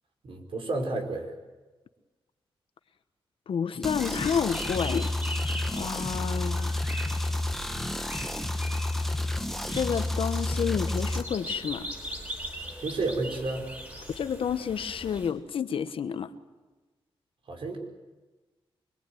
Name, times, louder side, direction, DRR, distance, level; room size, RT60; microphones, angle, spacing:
voice 1, 0.2-1.3 12.8-13.6 17.5-17.8, right 3 dB, 70° right, 5.2 m, -31 dB
voice 2, 3.5-5.1 5.7-6.7 9.7-11.9 14.1-16.3, left 7 dB, 75° left, 1.2 m, -30 dB
sound 1, 3.8-11.2, left 1 dB, 5° left, 1.4 m, -30 dB
sound 2, 4.0-15.3, equal, 20° right, 5.5 m, -41 dB
25.5 x 22.0 x 9.4 m
wide cardioid pair, 115°, 9 cm